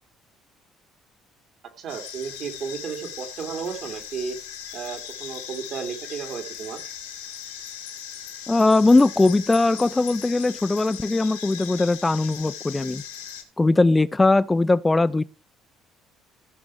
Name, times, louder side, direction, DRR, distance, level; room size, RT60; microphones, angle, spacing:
voice 1, 1.8-4.4 4.7-6.8, right 6 dB, 60° right, 3.0 m, -33 dB
sound 1, 1.9-13.4, left 9 dB, 85° left, 2.0 m, -38 dB
voice 2, 8.5-13.0 13.6-15.2, left 2 dB, 20° left, 0.6 m, -20 dB
15.5 x 6.1 x 4.7 m
hypercardioid pair, 55°, 0 cm